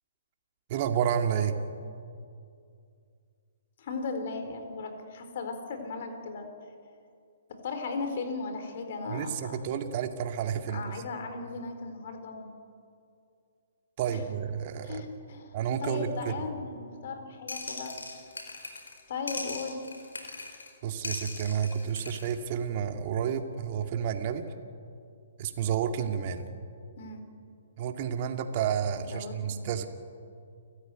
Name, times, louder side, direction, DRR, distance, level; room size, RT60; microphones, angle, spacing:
voice 1, 0.7-1.6 9.1-11.0 14.0-15.1 15.5-16.5 20.8-24.5 25.4-26.4 27.8-29.9, right 8 dB, 45° right, 6 dB, 2.3 m, -30 dB
voice 2, 3.8-6.5 7.5-9.6 10.7-12.5 14.1-14.2 14.8-18.0 19.1-19.8 27.0-27.2 29.0-29.7, left 4 dB, 55° left, 6 dB, 4.3 m, -37 dB
sound 1, 17.5-19.0 19.3-20.7 21.0-22.4, left 3 dB, 85° left, 4.6 m, -40 dB
29.5 x 14.5 x 9.4 m, 2.4 s
hypercardioid pair, 135°, 0 cm